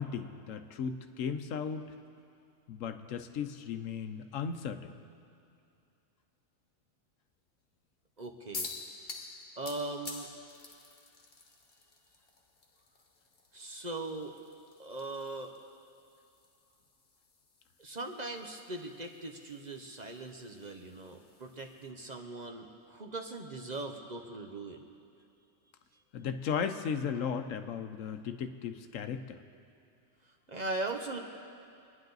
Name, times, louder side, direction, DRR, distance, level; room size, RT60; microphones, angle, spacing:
voice 1, 0.0-1.9 2.7-5.0 26.1-29.4, left 6 dB, 80° left, 8 dB, 1.1 m, -36 dB
voice 2, 8.2-8.7 9.6-10.3 13.5-14.3 14.8-15.5 17.8-24.9 30.2-31.2, right 2 dB, 40° right, 3 dB, 0.8 m, -40 dB
sound 1, 8.5-21.9, left 3 dB, 50° left, 1.3 m, -49 dB
25.0 x 10.0 x 4.0 m, 2.6 s
omnidirectional pair, 1.3 m